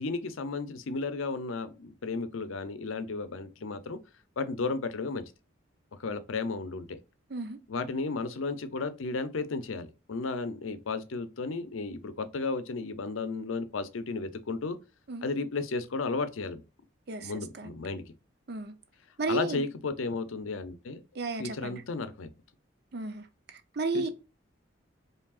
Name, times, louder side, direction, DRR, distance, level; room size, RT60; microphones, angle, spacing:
voice 1, 0.0-4.0 4.4-5.2 6.0-7.0 7.7-14.8 15.2-16.6 17.2-18.0 19.3-21.0 21.4-22.3 23.9-24.1, left 3 dB, 85° left, 0.6 m, -33 dB
voice 2, 17.1-17.7 18.5-18.7 19.2-19.7 21.2-21.8 22.9-24.1, right 3 dB, 55° right, 0.6 m, -34 dB
4.6 x 3.2 x 2.4 m
head